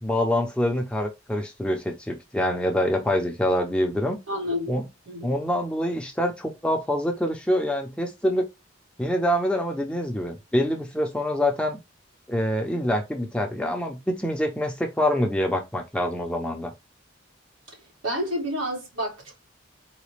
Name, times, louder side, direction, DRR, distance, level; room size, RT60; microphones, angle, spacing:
voice 1, 0.0-4.2 4.7-4.8 5.2-8.5 9.0-11.8 12.3-16.7, equal, 5° left, 0.5 m, -25 dB
voice 2, 4.3-5.3 18.0-19.5, equal, 85° right, 1.9 m, -30 dB
4.0 x 2.2 x 3.1 m
head